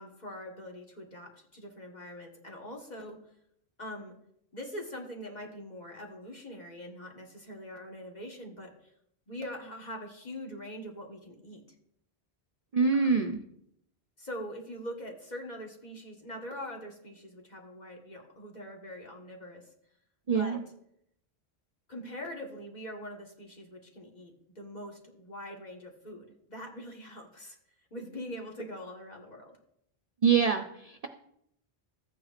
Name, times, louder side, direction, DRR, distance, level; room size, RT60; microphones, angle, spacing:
voice 1, 0.0-3.3 3.8-4.1 4.5-8.9 9.3-11.6 12.9-13.2 14.2-19.7 20.3-20.6 21.9-27.6 27.9-29.6, equal, 40° left, 0 dB, 1.6 m, -43 dB
voice 2, 12.7-13.4 20.3-20.6 30.2-31.1, right 5 dB, 45° right, 3 dB, 0.5 m, -25 dB
14.0 x 8.7 x 2.5 m, 0.74 s
omnidirectional pair, 1.1 m